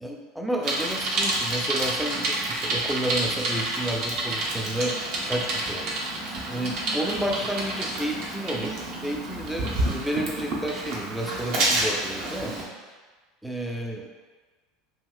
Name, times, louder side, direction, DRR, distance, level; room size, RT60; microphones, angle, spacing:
voice 1, 0.0-5.0 5.3-6.1 6.5-12.9 13.4-14.1, right 1 dB, ahead, -1 dB, 0.5 m, -31 dB
Bicycle, 0.6-12.6, right 2 dB, 60° right, 0.6 m, -29 dB
2.9 x 2.7 x 2.3 m, 1.4 s
hypercardioid pair, 85°, 0 cm